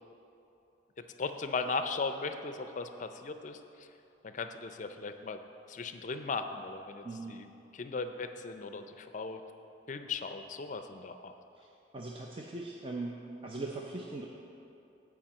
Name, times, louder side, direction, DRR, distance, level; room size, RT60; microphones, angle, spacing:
voice 1, 1.2-3.9 4.2-5.4 5.7-7.5 7.7-9.4 9.9-11.3, left 4 dB, 45° left, 8 dB, 0.5 m, -37 dB
voice 2, 7.0-7.4 11.6-11.7 11.9-13.2 13.4-14.2, right 2 dB, 30° right, -1 dB, 0.5 m, -40 dB
8.9 x 4.9 x 7.4 m, 2.8 s
head